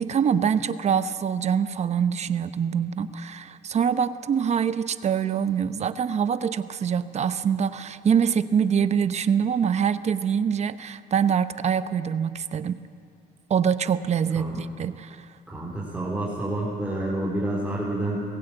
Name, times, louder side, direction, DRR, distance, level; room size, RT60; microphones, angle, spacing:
voice 1, 0.0-12.8 13.5-15.2, right 7 dB, 40° right, 12 dB, 0.8 m, -24 dB
voice 2, 15.5-18.2, right 1 dB, 5° right, -7 dB, 4.1 m, -28 dB
21.0 x 16.0 x 8.9 m, 2.3 s
cardioid pair, 110°, 17 cm